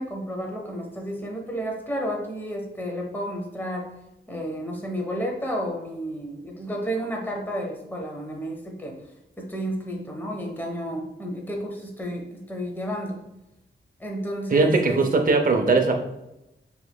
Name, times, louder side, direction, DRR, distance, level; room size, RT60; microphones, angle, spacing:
voice 1, 0.0-3.9 4.3-9.0 9.4-13.2 14.0-15.0, equal, 10° left, 0 dB, 0.9 m, -31 dB
voice 2, 14.5-16.0, right 3 dB, 45° right, 3 dB, 0.6 m, -20 dB
6.2 x 3.0 x 2.2 m, 0.91 s
wide cardioid pair, 85°, 20 cm